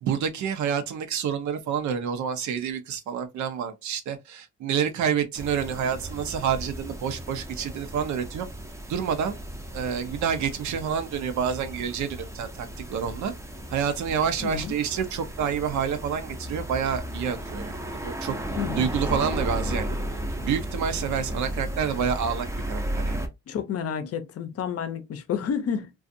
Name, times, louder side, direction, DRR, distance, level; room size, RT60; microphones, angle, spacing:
voice 1, 0.0-8.5 8.9-9.4 9.7-13.3 13.7-18.4 18.8-19.9 20.4-23.2, right 7 dB, 70° right, 0.7 m, -28 dB
sound 1, 5.4-23.3, right 1 dB, 10° right, 0.5 m, -34 dB
voice 2, 14.4-14.7 18.6-18.9 23.5-25.9, left 7 dB, 55° left, 0.6 m, -30 dB
2.5 x 2.4 x 2.5 m
cardioid pair, 90°, 30 cm